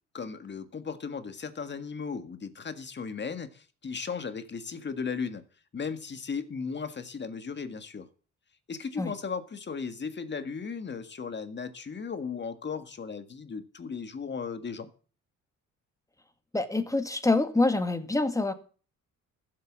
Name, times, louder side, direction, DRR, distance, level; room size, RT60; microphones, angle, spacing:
voice 1, 0.1-5.4 5.7-8.1 8.7-14.9, left 5 dB, 35° left, 1.8 m, -36 dB
voice 2, 16.5-18.5, left 2 dB, 10° left, 1.9 m, -26 dB
14.5 x 8.2 x 7.5 m
cardioid pair, 90°, 30 cm